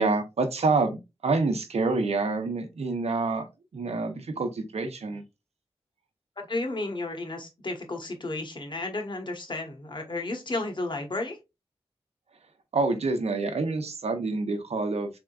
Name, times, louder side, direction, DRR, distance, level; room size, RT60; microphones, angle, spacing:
voice 1, 0.0-3.5 3.7-5.2 12.7-15.2, right 3 dB, 85° right, 7 dB, 0.7 m, -27 dB
voice 2, 6.4-11.4, left 2 dB, 50° left, 3 dB, 1.2 m, -33 dB
3.6 x 3.5 x 2.3 m, 0.24 s
cardioid pair, 45°, 11 cm